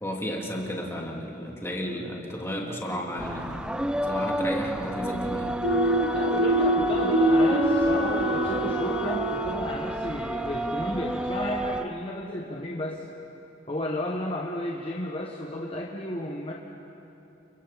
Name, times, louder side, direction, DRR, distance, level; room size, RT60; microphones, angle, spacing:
voice 1, 0.0-3.6 4.1-5.6, equal, 15° left, -2 dB, 2.7 m, -33 dB
sound 1, 3.2-11.8, right 1 dB, 5° right, 0.5 m, -30 dB
Wind instrument woodwind instrument, 5.6-10.0, right 1 dB, 70° left, 1.3 m, -32 dB
sound 2, 5.6-9.3, right 1 dB, 75° right, 1.1 m, -24 dB
voice 2, 6.1-13.0 13.7-16.5, left 1 dB, 30° left, -2 dB, 1.4 m, -33 dB
29.5 x 29.5 x 4.2 m, 2.9 s
head